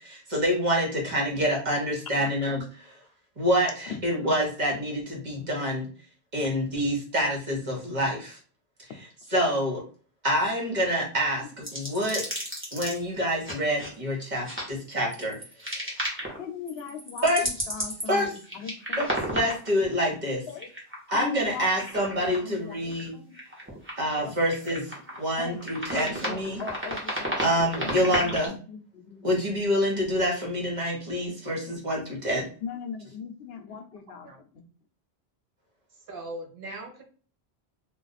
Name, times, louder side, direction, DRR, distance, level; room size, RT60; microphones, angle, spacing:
voice 1, 0.0-3.0 3.4-5.9 6.3-8.4 9.3-9.8 10.2-12.2 12.7-15.3 15.7-15.9 17.2-17.4 18.1-18.3 19.0-20.4 21.1-23.1 24.0-24.8 25.2-26.6 27.4-28.5 29.2-32.5, equal, 45° right, -1 dB, 1.2 m, -27 dB
sound 1, 11.6-13.0 13.4-13.9 14.5-14.6 15.1-16.4 16.7-19.8 20.5-21.1 21.4-22.4 22.8-23.1 23.3-24.2 24.5-25.2 25.6-28.5, equal, 15° right, 0.9 m, -33 dB
voice 2, 16.4-19.1 20.5-20.7 21.1-21.7 21.9-23.4 24.2-24.5 25.4-25.6 25.9-27.4 27.8-28.4 28.7-29.3 31.4-31.5 32.6-34.7, left 6 dB, 75° left, 6 dB, 0.8 m, -40 dB
voice 3, 36.1-37.0, right 1 dB, 60° right, 2 dB, 0.9 m, -39 dB
2.5 x 2.2 x 4.0 m, 0.40 s
omnidirectional pair, 1.1 m